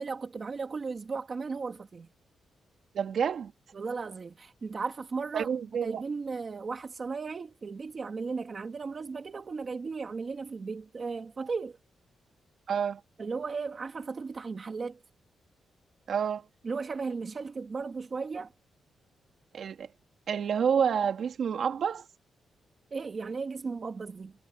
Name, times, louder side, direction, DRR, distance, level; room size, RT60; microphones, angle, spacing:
voice 1, 0.0-2.1 3.7-5.5 5.8-11.8 13.2-15.0 16.6-18.5 22.9-24.3, right 4 dB, 30° right, 2.3 m, -36 dB
voice 2, 2.9-3.5 5.3-6.0 12.7-13.0 16.1-16.5 19.5-19.9 20.3-22.1, right 7 dB, 50° right, 2.7 m, -28 dB
wide cardioid pair, 175°, 0 cm